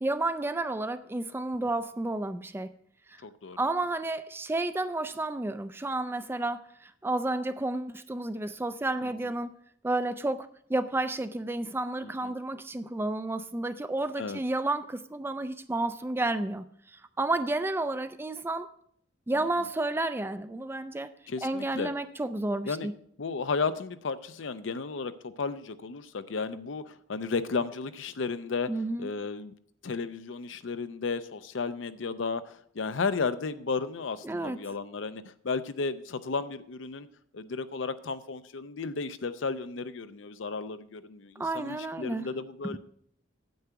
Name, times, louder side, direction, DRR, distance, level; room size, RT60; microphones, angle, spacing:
voice 1, 0.0-2.7 3.1-3.2 3.6-9.5 9.8-18.7 19.3-21.1 21.4-22.9 28.7-29.1 34.2-34.6 41.4-42.3 42.6-42.8, right 2 dB, 10° right, 11 dB, 0.4 m, -31 dB
voice 2, 3.2-3.6 9.0-9.3 12.0-12.3 14.2-14.4 19.4-19.5 21.3-21.9 22.7-22.9 23.2-28.7 29.0-29.5 29.8-37.1 37.3-42.8, left 4 dB, 70° left, 12 dB, 0.6 m, -34 dB
9.4 x 8.0 x 4.7 m, 0.66 s
head